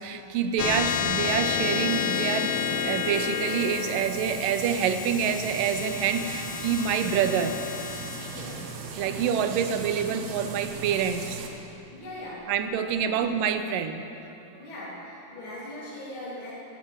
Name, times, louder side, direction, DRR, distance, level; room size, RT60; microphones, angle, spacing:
voice 1, 0.0-7.6 9.0-11.4 12.5-14.1, right 7 dB, 90° right, 9 dB, 2.4 m, -27 dB
sound 1, 0.6-11.4, left 8 dB, 80° left, 1.8 m, -31 dB
sound 2, 1.2-11.5, right 5 dB, 60° right, 2.2 m, -39 dB
voice 2, 8.3-8.6 11.9-13.3 14.6-16.5, left 1 dB, 40° left, -9 dB, 3.8 m, -40 dB
14.0 x 11.5 x 8.0 m, 3.0 s
omnidirectional pair, 3.9 m